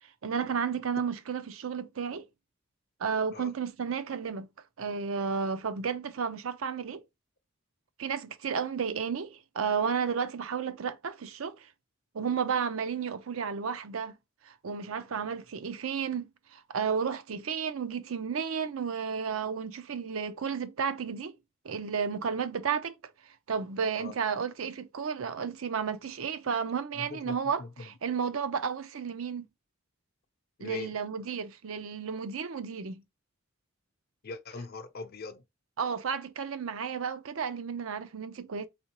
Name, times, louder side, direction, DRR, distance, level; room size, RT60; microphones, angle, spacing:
voice 1, 0.2-2.3 3.0-4.5 4.8-7.0 8.0-11.7 12.1-14.2 14.4-21.3 21.6-22.9 23.2-29.5 30.6-33.0 35.8-38.7, right 6 dB, 80° right, 0.5 m, -32 dB
voice 2, 26.9-27.9 30.6-30.9 34.2-35.4, left 3 dB, 50° left, 0.6 m, -41 dB
4.2 x 3.6 x 2.9 m
head